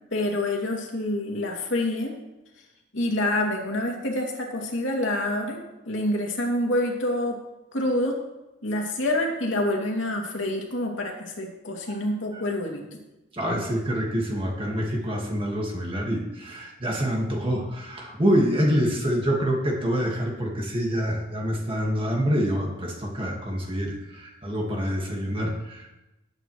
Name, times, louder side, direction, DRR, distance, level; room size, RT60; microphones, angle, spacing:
voice 1, 0.1-2.2 2.9-7.4 7.7-8.2 8.6-12.8, left 1 dB, 85° left, 0 dB, 2.6 m, -27 dB
voice 2, 13.3-25.9, equal, 30° right, 0 dB, 1.8 m, -26 dB
18.0 x 9.0 x 3.2 m, 0.98 s
head